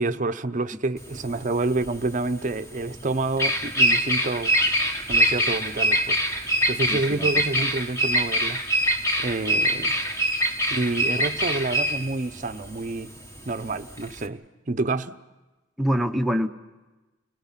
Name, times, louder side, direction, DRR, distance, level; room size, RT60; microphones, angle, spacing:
voice 1, 0.0-4.5 5.1-6.2 6.7-8.6 9.2-10.0 10.7-13.1 13.5-15.2, right 2 dB, 40° right, 11 dB, 0.7 m, -28 dB
Bird vocalization bird call bird song, 1.0-14.3, right 1 dB, 15° left, 1.3 m, -24 dB
voice 2, 6.9-7.4 15.8-16.5, equal, ahead, 5 dB, 0.8 m, -25 dB
30.0 x 19.0 x 5.8 m, 1.1 s
head